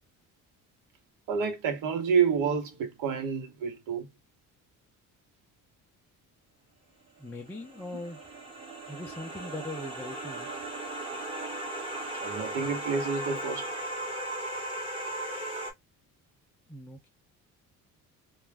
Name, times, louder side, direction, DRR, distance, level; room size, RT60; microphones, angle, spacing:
voice 1, 1.3-4.1 7.9-8.0 12.2-13.7, right 6 dB, 80° right, 0.9 m, -29 dB
voice 2, 7.2-8.3 8.9-10.5 16.7-17.1, left 2 dB, 5° left, 0.3 m, -40 dB
sound 1, 7.3-15.7, right 1 dB, 15° right, 0.8 m, -37 dB
2.3 x 2.1 x 3.2 m
cardioid pair, 145°, 32 cm